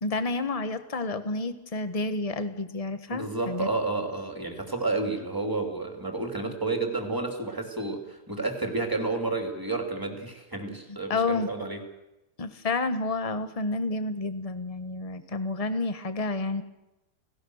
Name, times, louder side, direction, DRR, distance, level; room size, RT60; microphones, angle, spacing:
voice 1, 0.0-3.7 11.1-11.5 12.4-16.6, left 3 dB, 25° left, 10 dB, 1.3 m, -30 dB
voice 2, 3.1-11.8, right 3 dB, 10° right, 3 dB, 3.2 m, -30 dB
29.5 x 18.0 x 6.5 m, 0.97 s
omnidirectional pair, 1.7 m